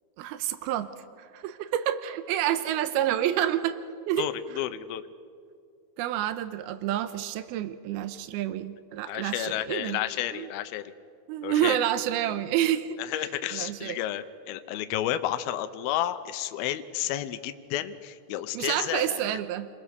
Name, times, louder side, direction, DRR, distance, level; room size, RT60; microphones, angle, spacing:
voice 1, 0.2-0.9 1.2-4.3 6.0-10.0 10.3-10.5 11.3-13.0 13.5-14.0 18.5-19.7, right 12 dB, 90° right, 11 dB, 2.7 m, -28 dB
voice 2, 4.2-5.1 9.1-10.8 11.4-11.8 13.0-19.4, left 12 dB, 80° left, 10 dB, 2.7 m, -31 dB
29.0 x 21.0 x 6.7 m, 2.2 s
omnidirectional pair, 4.4 m